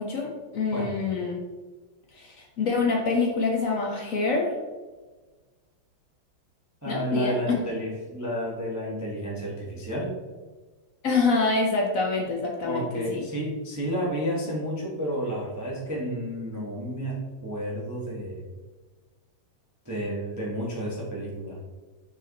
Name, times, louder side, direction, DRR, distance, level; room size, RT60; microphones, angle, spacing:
voice 1, 0.0-1.4 2.1-4.5 6.9-7.6 11.0-13.2, left 4 dB, 65° left, 0 dB, 0.8 m, -26 dB
voice 2, 6.8-10.1 12.6-18.4 19.8-21.6, equal, 10° right, -4 dB, 0.8 m, -31 dB
5.6 x 5.1 x 4.0 m, 1.3 s
omnidirectional pair, 2.4 m